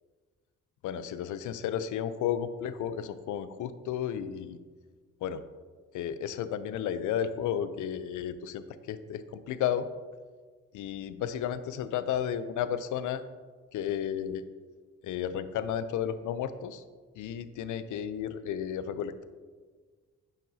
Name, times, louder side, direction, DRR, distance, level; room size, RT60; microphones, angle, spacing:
voice 1, 0.8-4.6 5.2-5.4 5.9-9.9 10.7-13.2 13.7-14.4 15.0-16.8 17.2-19.3, left 9 dB, 75° left, 13 dB, 0.5 m, -33 dB
9.1 x 7.0 x 2.7 m, 1.5 s
supercardioid pair, 55°, 31 cm